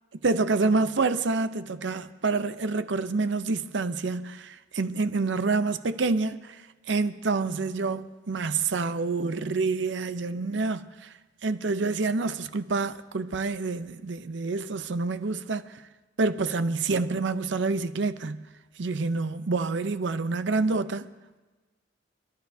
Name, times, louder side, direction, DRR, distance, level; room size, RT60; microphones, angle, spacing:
voice 1, 0.2-6.6 6.9-11.1 11.4-15.8 16.2-18.4 18.8-21.1, right 3 dB, 80° right, 0.6 m, -27 dB
28.5 x 11.5 x 2.7 m
head